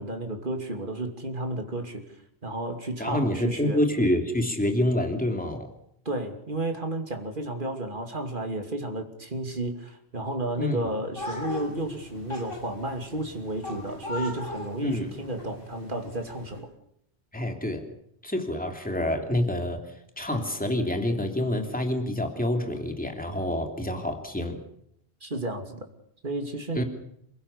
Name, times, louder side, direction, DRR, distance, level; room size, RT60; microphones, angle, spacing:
voice 1, 0.0-2.0 2.4-3.8 6.0-16.7 25.2-25.8 26.2-26.8, right 1 dB, 50° right, 4 dB, 2.9 m, -32 dB
voice 2, 3.0-5.7 10.6-10.8 14.8-15.1 17.3-17.8 18.2-24.6 26.7-26.8, left 1 dB, 10° left, 4 dB, 2.9 m, -27 dB
sound 1, 11.2-16.6, left 1 dB, 55° left, 7.1 m, -39 dB
28.0 x 16.0 x 6.9 m, 0.74 s
omnidirectional pair, 1.1 m